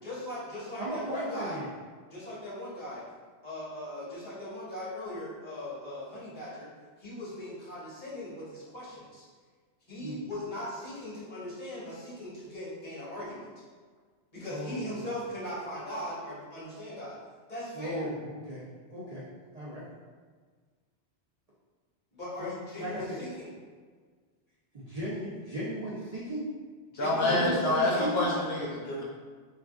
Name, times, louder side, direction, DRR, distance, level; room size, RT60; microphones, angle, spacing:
voice 1, 0.0-1.6 2.1-3.0 3.4-6.7 7.0-9.2 9.9-13.5 14.3-17.2 17.5-18.1 22.1-23.5 26.9-28.4, left 1 dB, 45° left, -9 dB, 1.3 m, -39 dB
voice 2, 0.8-1.7 10.0-10.1 14.5-15.0 17.7-18.6 18.9-19.2 19.5-19.8 22.4-22.5 22.8-23.0 24.7-26.5 27.3-28.3, equal, 45° right, -9 dB, 0.6 m, -35 dB
voice 3, 27.0-29.0, left 1 dB, 70° left, -4 dB, 0.8 m, -27 dB
3.4 x 2.5 x 2.3 m, 1.5 s
omnidirectional pair, 1.1 m